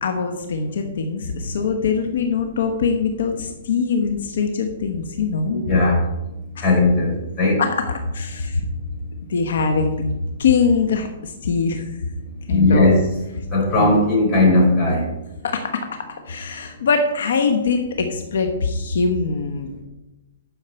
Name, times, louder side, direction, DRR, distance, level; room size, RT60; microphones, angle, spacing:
voice 1, 0.0-5.6 6.6-6.7 7.6-8.6 9.3-10.1 10.4-11.9 12.5-12.9 13.8-13.9 15.4-19.8, left 5 dB, 75° left, 5 dB, 1.1 m, -22 dB
voice 2, 5.5-6.0 6.6-7.6 12.5-13.0 13.5-15.0, left 2 dB, 25° left, -2 dB, 4.0 m, -17 dB
11.5 x 6.5 x 4.4 m, 1.0 s
hypercardioid pair, 155°, 0 cm